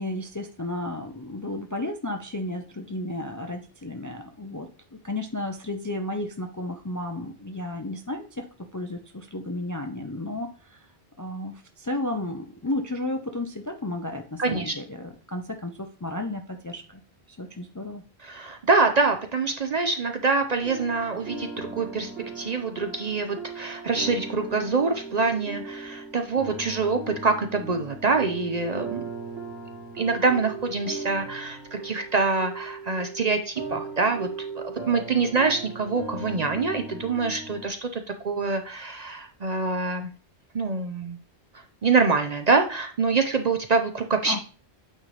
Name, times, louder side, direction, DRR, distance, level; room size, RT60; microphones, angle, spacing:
voice 1, 0.0-10.8 11.2-17.0 17.4-18.0 44.3-44.4, left 1 dB, 25° left, 5 dB, 0.4 m, -33 dB
voice 2, 14.4-14.8 18.2-22.1 22.4-29.0 29.9-34.3 34.6-40.1 40.5-41.2 41.8-44.4, right 4 dB, 45° right, 6 dB, 0.6 m, -25 dB
sound 1, 20.6-37.7, right 4 dB, 65° right, 1.5 m, -38 dB
8.7 x 3.9 x 3.2 m, 0.39 s
omnidirectional pair, 1.1 m